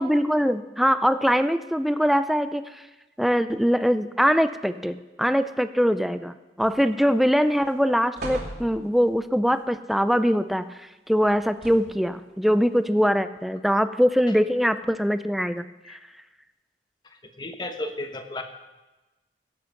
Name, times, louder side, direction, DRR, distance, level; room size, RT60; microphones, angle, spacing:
voice 1, 0.0-2.8 3.2-16.0, equal, ahead, 11 dB, 0.4 m, -22 dB
sound 1, 6.6-7.1 7.5-7.7 8.1-9.2 11.3-12.1 12.9-13.0, right 1 dB, 65° right, 2.7 m, -39 dB
voice 2, 17.4-18.4, left 2 dB, 25° left, 6 dB, 1.0 m, -33 dB
17.0 x 7.8 x 5.9 m, 1.1 s
head